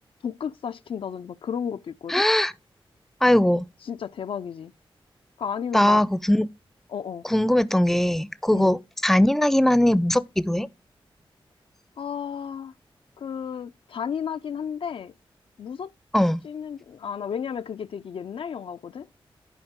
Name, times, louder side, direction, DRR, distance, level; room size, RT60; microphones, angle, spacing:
voice 1, 0.2-2.3 3.5-3.6 3.9-4.7 5.4-6.0 6.9-7.2 8.5-8.8 12.0-12.7 13.2-15.1 15.6-15.9 16.4-19.1, left 7 dB, 70° left, 0.3 m, -33 dB
voice 2, 2.1-2.5 3.2-3.6 5.7-6.5 7.3-10.7 16.1-16.4, left 1 dB, 5° left, 0.5 m, -20 dB
11.0 x 4.7 x 3.5 m
cardioid pair, 75°, 9 cm